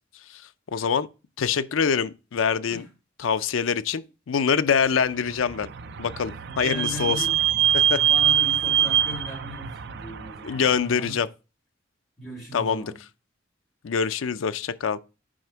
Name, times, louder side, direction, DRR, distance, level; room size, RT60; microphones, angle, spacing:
voice 1, 0.7-1.1 1.4-2.8 3.2-5.7 6.0-7.3 7.7-8.0 10.4-11.3 12.5-12.9 13.8-15.0, left 6 dB, 75° left, 0.5 m, -25 dB
Vehicle / Squeak, 5.2-10.8, right 10 dB, 55° right, 0.4 m, -24 dB
voice 2, 6.5-7.4 8.0-11.2 12.2-13.0, equal, ahead, 3.7 m, -38 dB
6.4 x 4.9 x 4.4 m
head